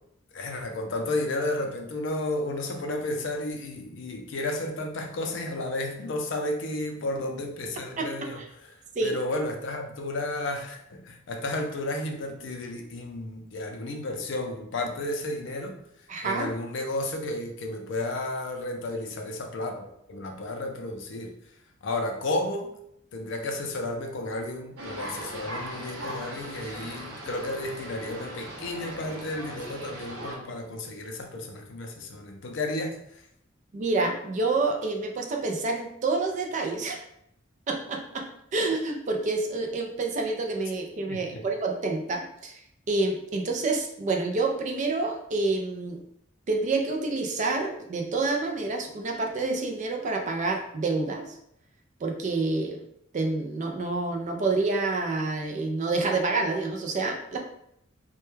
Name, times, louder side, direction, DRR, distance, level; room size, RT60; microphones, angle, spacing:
voice 1, 0.3-8.4 9.0-15.8 16.2-21.3 21.8-22.7 23.1-33.2 41.1-41.4, left 2 dB, 65° left, 3 dB, 0.4 m, -32 dB
voice 2, 16.1-16.5 33.7-37.0 37.7-38.3 38.5-42.6 42.9-46.0 46.5-51.3 52.0-52.8 53.1-57.4, right 3 dB, 40° right, 2 dB, 0.3 m, -28 dB
sound 1, 24.8-30.4, right 1 dB, 85° right, 0.7 m, -39 dB
2.2 x 2.2 x 3.0 m, 0.74 s
head